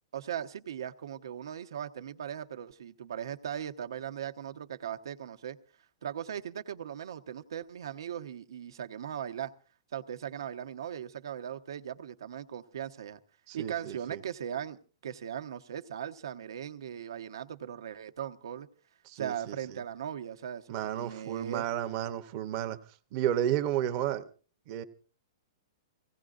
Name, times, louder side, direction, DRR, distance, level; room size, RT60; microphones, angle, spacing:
voice 1, 0.1-5.6 6.0-9.5 9.9-13.2 13.5-18.7 19.2-21.6, right 9 dB, 70° right, 0.9 m, -39 dB
voice 2, 13.5-14.2 19.1-19.6 20.7-22.8 23.1-24.2 24.7-24.8, right 11 dB, 25° right, 0.7 m, -32 dB
25.5 x 17.0 x 2.5 m
hypercardioid pair, 180°, 2 cm